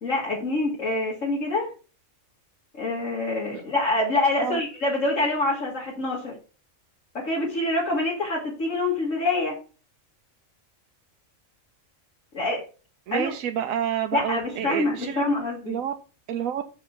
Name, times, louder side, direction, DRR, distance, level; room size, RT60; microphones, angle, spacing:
voice 1, 0.0-1.7 2.7-6.3 7.1-9.6 12.3-12.6 13.1-13.3 14.1-15.8, left 2 dB, 70° left, -5 dB, 2.7 m, -26 dB
voice 2, 13.1-15.2 15.7-15.9 16.3-16.6, right 9 dB, 80° right, 6 dB, 1.1 m, -29 dB
6.3 x 5.8 x 6.0 m, 0.35 s
omnidirectional pair, 1.4 m